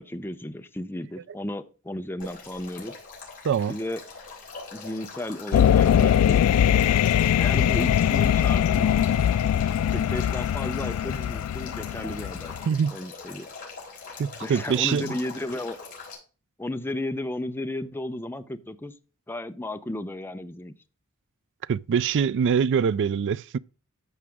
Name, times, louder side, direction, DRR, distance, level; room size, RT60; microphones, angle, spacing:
voice 1, 0.1-2.9 3.7-4.0 4.7-6.9 7.4-9.0 9.9-12.5 12.9-13.5 14.4-15.8 16.6-18.9 19.3-20.7, left 1 dB, 10° left, 0.6 m, -34 dB
Male speech man speaking / Stream / Trickle dribble, 2.2-16.1, left 4 dB, 40° left, 4.7 m, -42 dB
voice 2, 3.4-3.8 12.7-13.0 14.2-15.1 21.7-23.6, right 7 dB, 55° right, 0.3 m, -24 dB
sound 1, 5.5-12.7, left 9 dB, 85° left, 0.3 m, -22 dB
13.5 x 5.0 x 3.5 m
head